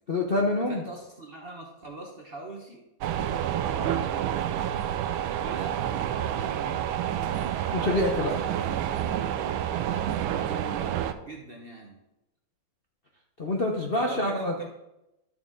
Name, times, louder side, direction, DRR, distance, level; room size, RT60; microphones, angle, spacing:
voice 1, 0.1-0.8 7.6-8.3 13.4-14.7, left 2 dB, 40° left, -1 dB, 0.8 m, -26 dB
voice 2, 0.7-2.8 3.3-4.8 5.3-5.8 6.1-6.9 7.8-8.5 9.9-11.0 11.2-12.0 14.0-14.7, right 2 dB, 35° right, 0 dB, 1.1 m, -42 dB
sound 1, 3.0-11.1, right 10 dB, 85° right, 1.5 m, -29 dB
12.0 x 6.8 x 3.7 m, 0.92 s
omnidirectional pair, 2.2 m